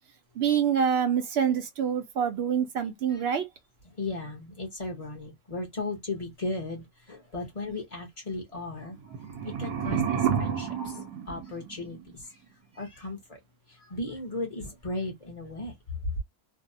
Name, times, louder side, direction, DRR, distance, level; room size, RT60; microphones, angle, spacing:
voice 1, 0.4-3.4, right 8 dB, 65° right, 0.6 m, -26 dB
voice 2, 4.0-9.0 9.6-12.2 12.7-13.2 13.9-15.7, left 2 dB, 35° left, 0.6 m, -36 dB
sound 1, 9.0-12.1, right 7 dB, 85° right, 1.1 m, -30 dB
2.7 x 2.0 x 2.5 m
omnidirectional pair, 1.6 m